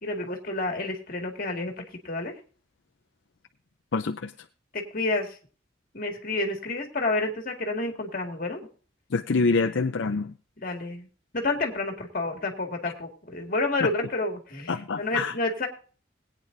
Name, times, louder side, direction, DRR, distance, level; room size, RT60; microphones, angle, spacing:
voice 1, 0.0-1.7 2.0-2.3 4.7-5.4 5.9-8.7 10.6-11.1 11.3-15.7, left 2 dB, 45° left, 3 dB, 2.0 m, -29 dB
voice 2, 3.9-4.3 9.1-10.3 13.8-13.9 14.7-15.3, left 4 dB, 70° left, 6 dB, 0.6 m, -26 dB
21.0 x 9.1 x 2.6 m, 0.40 s
head